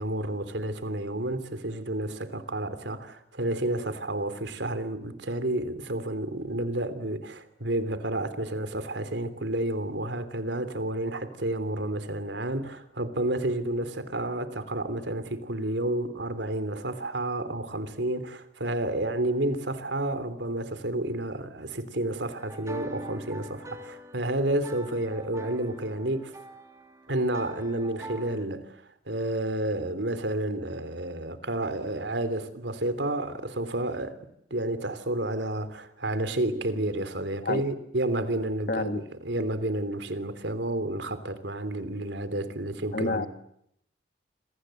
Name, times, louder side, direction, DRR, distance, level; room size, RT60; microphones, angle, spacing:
voice 1, 0.0-26.3 27.1-28.8 29.1-34.1 34.5-43.3, right 1 dB, 75° right, 3.3 m, -30 dB
sound 1, 22.4-28.5, right 1 dB, 15° right, 2.7 m, -43 dB
voice 2, 38.7-39.0 42.9-43.3, left 2 dB, 55° left, 1.5 m, -28 dB
28.0 x 27.0 x 7.9 m
head